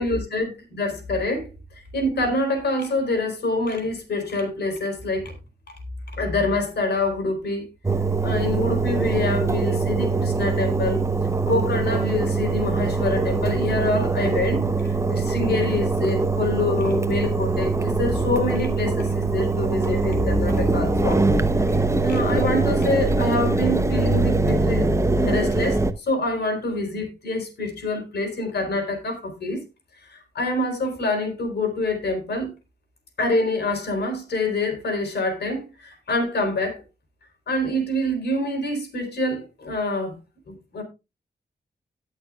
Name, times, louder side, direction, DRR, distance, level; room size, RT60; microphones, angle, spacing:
voice 1, 0.0-1.5 1.9-5.4 6.2-7.7 8.2-11.0 11.4-21.2 21.6-21.7 22.0-24.9 25.2-29.6 30.0-32.5 33.2-36.8 37.5-40.2 40.5-40.8, left 2 dB, 80° left, 3.9 m, -26 dB
Engine, 7.8-25.9, right 3 dB, 15° right, 0.9 m, -22 dB
18.5 x 6.4 x 2.4 m
cardioid pair, 70°, 17 cm